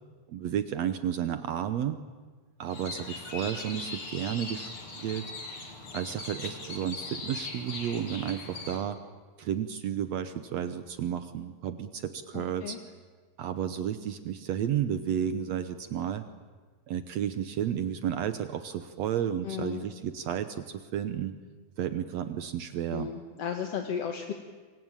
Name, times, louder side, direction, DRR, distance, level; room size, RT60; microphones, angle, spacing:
voice 1, 0.3-2.0 2.6-5.3 5.9-9.0 9.4-12.8 13.4-16.2 16.9-21.3 21.8-23.1, right 9 dB, 80° right, 11 dB, 1.5 m, -32 dB
sound 1, 2.7-8.8, left 3 dB, 35° left, 3.6 m, -40 dB
voice 2, 12.3-12.8 19.4-19.8 22.9-24.3, left 8 dB, 55° left, 5 dB, 2.0 m, -34 dB
27.5 x 23.5 x 9.0 m, 1.4 s
omnidirectional pair, 4.5 m